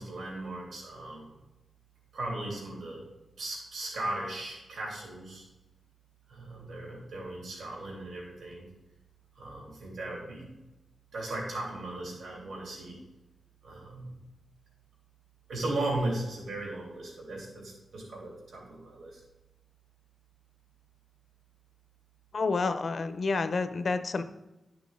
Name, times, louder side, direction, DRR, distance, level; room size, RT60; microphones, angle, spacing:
voice 1, 0.0-1.4 2.1-3.0 3.4-5.4 6.3-8.7 9.4-10.5 11.1-13.0 13.6-14.1 15.5-19.2, right 2 dB, 85° right, -2 dB, 3.0 m, -37 dB
voice 2, 22.3-24.2, left 4 dB, 50° left, 10 dB, 0.6 m, -29 dB
11.5 x 6.1 x 3.6 m, 1.0 s
wide cardioid pair, 145°, 0 cm